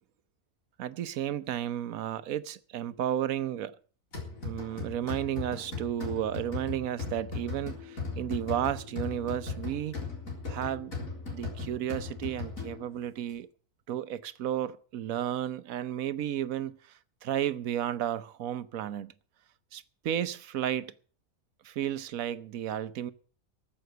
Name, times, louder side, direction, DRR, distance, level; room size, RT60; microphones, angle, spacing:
voice 1, 0.8-3.8 4.4-9.9 10.5-10.9 11.3-13.5 13.9-19.1 19.7-20.9 21.6-23.1, right 11 dB, 80° right, 1.2 m, -33 dB
sound 1, 4.1-13.0, left 4 dB, 75° left, 4.4 m, -38 dB
14.0 x 7.7 x 7.9 m
omnidirectional pair, 1.4 m